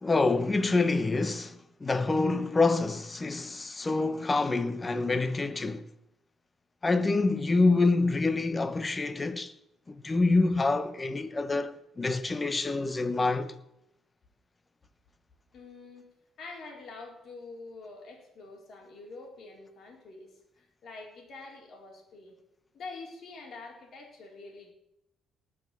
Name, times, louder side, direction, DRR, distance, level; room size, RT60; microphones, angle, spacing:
voice 1, 0.0-5.9 6.8-9.5 9.9-13.5, left 3 dB, 20° left, 1.0 m, -26 dB
voice 2, 15.5-16.1 16.4-22.3 22.7-24.7, left 3 dB, 55° left, 4.2 m, -46 dB
18.5 x 6.2 x 7.5 m
cardioid pair, 105°, 0 cm